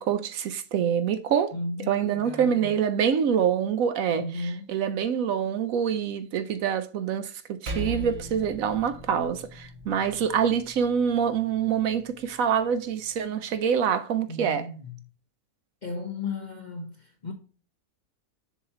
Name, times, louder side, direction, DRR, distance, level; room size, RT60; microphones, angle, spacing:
voice 1, 0.0-1.6 1.9-14.7, right 8 dB, 70° right, 0.9 m, -26 dB
voice 2, 1.5-2.7 4.2-4.6 14.3-14.9 15.8-17.3, left 2 dB, 45° left, 0.6 m, -35 dB
Percussion, 7.7-12.4, right 1 dB, 35° right, 0.9 m, -39 dB
7.1 x 2.9 x 5.6 m
omnidirectional pair, 1.6 m